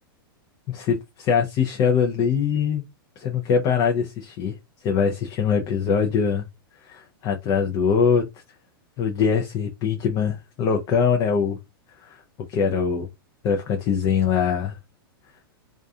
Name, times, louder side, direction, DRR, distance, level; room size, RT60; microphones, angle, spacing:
voice 1, 0.7-2.8 3.2-4.6 4.8-6.4 6.8-8.2 9.0-11.6 12.0-12.2 12.5-13.1 13.4-14.8, left 6 dB, 35° left, 0.5 m, -22 dB
2.4 x 2.2 x 2.6 m
hypercardioid pair, 130°, 12 cm